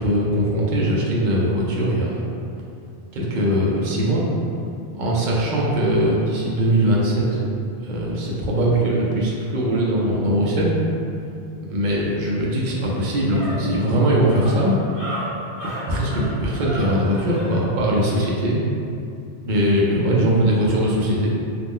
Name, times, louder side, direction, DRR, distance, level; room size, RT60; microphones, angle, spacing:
voice 1, 0.0-2.1 3.1-4.2 4.9-7.4 7.8-10.8 11.7-14.8 15.9-18.6 19.4-21.3, right 1 dB, 60° right, -4 dB, 0.6 m, -20 dB
sound 1, 12.6-17.6, right 1 dB, 15° left, 0.8 m, -34 dB
2.4 x 2.1 x 3.5 m, 2.5 s
omnidirectional pair, 1.0 m